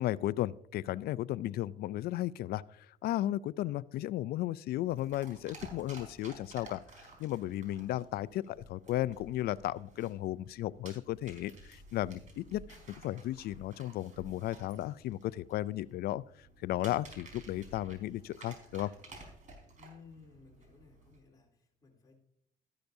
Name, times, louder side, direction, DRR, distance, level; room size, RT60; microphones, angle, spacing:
voice 1, 0.0-8.4 8.7-18.9, left 14 dB, 65° left, 19 dB, 0.4 m, -35 dB
sound 1, 4.8-21.2, right 2 dB, 45° right, 4.4 m, -54 dB
voice 2, 8.4-8.7 19.8-22.2, left 5 dB, 20° left, -2 dB, 3.4 m, -58 dB
13.5 x 11.5 x 2.7 m, 0.72 s
cardioid pair, 110°, 17 cm